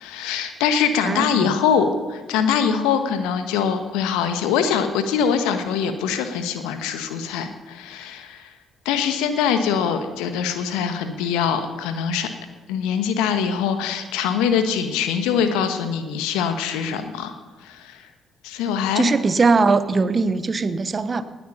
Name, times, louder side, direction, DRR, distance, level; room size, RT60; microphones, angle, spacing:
voice 1, 0.0-8.5 8.8-12.3 12.7-17.4 17.6-18.1 18.4-19.1, left 7 dB, 70° left, 9 dB, 1.2 m, -23 dB
voice 2, 1.1-1.6 18.9-21.2, right 4 dB, 35° right, 13 dB, 0.9 m, -20 dB
19.0 x 9.0 x 5.6 m, 1.3 s
figure-of-eight pair, 45°, 0 cm